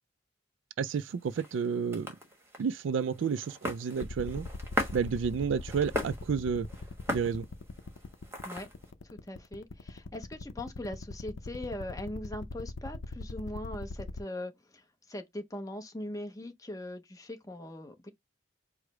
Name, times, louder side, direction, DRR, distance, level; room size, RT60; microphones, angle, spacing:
sound 1, 0.8-8.9, equal, 15° right, 1.0 m, -39 dB
voice 1, 0.8-2.1 2.6-4.5 4.9-6.7 7.1-7.5, right 6 dB, 70° right, 0.3 m, -31 dB
sound 2, 4.0-14.2, left 4 dB, 70° left, 0.6 m, -39 dB
voice 2, 9.3-18.1, left 1 dB, 15° left, 0.7 m, -40 dB
4.8 x 2.0 x 4.7 m
head